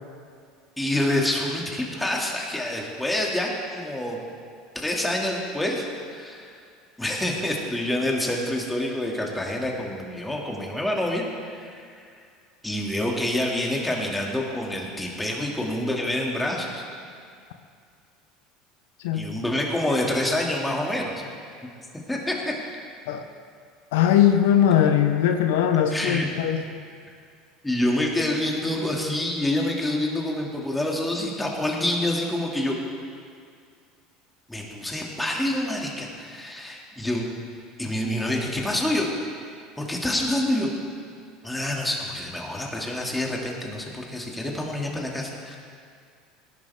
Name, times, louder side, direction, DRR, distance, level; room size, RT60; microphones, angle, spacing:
voice 1, 0.8-4.2 4.7-5.9 6.1-6.5 7.0-11.9 12.6-16.9 19.1-21.2 22.1-22.5 25.9-26.3 27.6-32.7 34.5-37.3 37.8-39.1 39.8-40.7 41.4-45.6, left 1 dB, 10° left, -1 dB, 2.6 m, -27 dB
voice 2, 23.9-26.6, left 9 dB, 75° left, 7 dB, 0.8 m, -20 dB
18.0 x 10.5 x 3.7 m, 2.2 s
hypercardioid pair, 85°, 0 cm